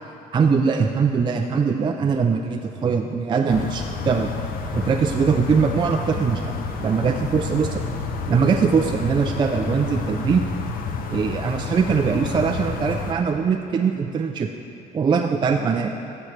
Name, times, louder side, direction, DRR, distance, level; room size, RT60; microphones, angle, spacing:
voice 1, 0.3-4.3 4.7-6.5 6.8-7.8 8.3-10.5 11.1-14.5 14.9-15.9, right 5 dB, 25° right, 3 dB, 0.4 m, -21 dB
sound 1, 3.5-13.1, left 4 dB, 60° left, 0.8 m, -29 dB
13.5 x 7.2 x 3.3 m, 2.9 s
cardioid pair, 110°, 17 cm